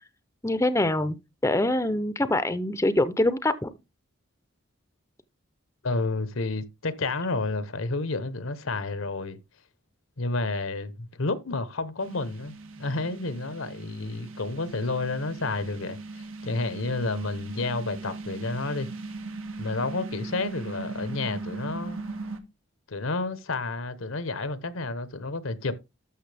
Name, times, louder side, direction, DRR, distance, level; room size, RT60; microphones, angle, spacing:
voice 1, 0.4-1.2 1.4-3.7, left 1 dB, 15° left, 0.5 m, -24 dB
voice 2, 5.8-9.4 10.2-18.9 19.6-22.0 22.9-25.7, left 3 dB, 80° left, 1.0 m, -30 dB
sound 1, 12.0-22.4, right 3 dB, 90° right, 1.5 m, -39 dB
12.5 x 6.2 x 3.4 m
head